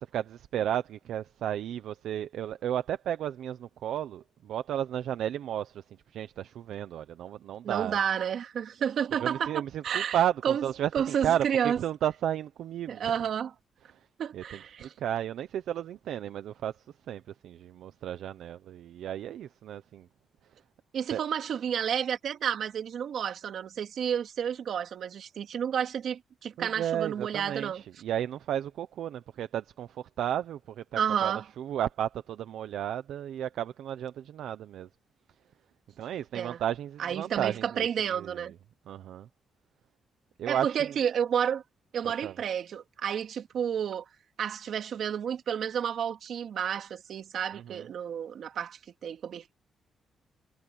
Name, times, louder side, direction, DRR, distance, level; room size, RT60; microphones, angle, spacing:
voice 1, 0.0-5.8 6.1-8.0 9.2-10.9 11.2-13.2 14.3-14.4 14.8-16.7 17.1-20.1 21.1-21.2 26.6-34.9 36.0-37.9 38.1-38.4 38.9-39.3 40.4-40.7 42.0-42.3 47.5-47.9, right 10 dB, 85° right, 0.9 m, -33 dB
voice 2, 7.6-10.6 10.9-11.8 12.9-13.5 14.2-14.9 20.9-27.8 31.0-31.5 36.3-36.6 37.0-38.5 40.5-41.6 41.9-44.1 44.4-49.5, right 8 dB, 65° right, 2.5 m, -31 dB
cardioid pair, 130°, 0 cm